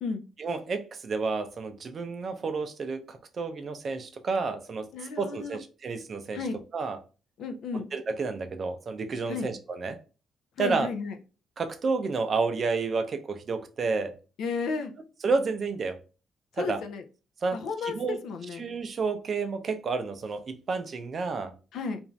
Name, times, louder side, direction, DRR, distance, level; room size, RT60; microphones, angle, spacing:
voice 1, 0.4-4.9 5.2-6.4 6.7-7.0 7.7-10.0 10.6-10.9 11.6-14.1 15.2-16.0 16.6-16.8 17.4-18.2 18.6-21.5, right 4 dB, 45° right, 0.5 m, -30 dB
voice 2, 4.9-5.6 6.3-6.6 7.4-7.8 9.3-9.5 10.6-11.2 14.4-14.9 16.6-17.0 17.5-18.0 18.2-18.6 21.7-22.0, left 4 dB, 75° left, 0.4 m, -33 dB
2.5 x 2.4 x 3.1 m
cardioid pair, 90°, 0 cm